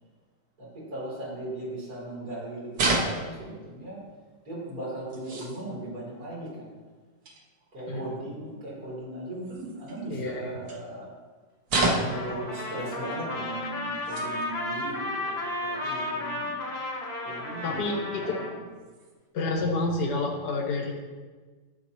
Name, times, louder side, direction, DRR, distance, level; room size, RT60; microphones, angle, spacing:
voice 1, 0.6-4.0 4.5-6.7 7.7-11.1 11.7-16.5 17.2-18.6, right 1 dB, 50° right, -6 dB, 4.0 m, -38 dB
sound 1, 2.7-3.5 4.7-4.8 5.1-5.6 7.2-7.4 9.4-10.1 10.7-10.8 11.7-12.3 13.3-13.4 13.9-14.5 14.9-15.0 16.1-16.2 17.3-17.4 18.8-19.1, right 2 dB, 85° right, 1.9 m, -29 dB
voice 2, 7.9-8.2 10.1-10.6 12.0-12.4 17.6-18.3 19.3-20.9, left 2 dB, 65° left, -2 dB, 2.2 m, -29 dB
Trumpet, 12.0-18.5, left 2 dB, 25° left, 1.5 m, -33 dB
15.0 x 6.8 x 3.1 m, 1.4 s
omnidirectional pair, 1.9 m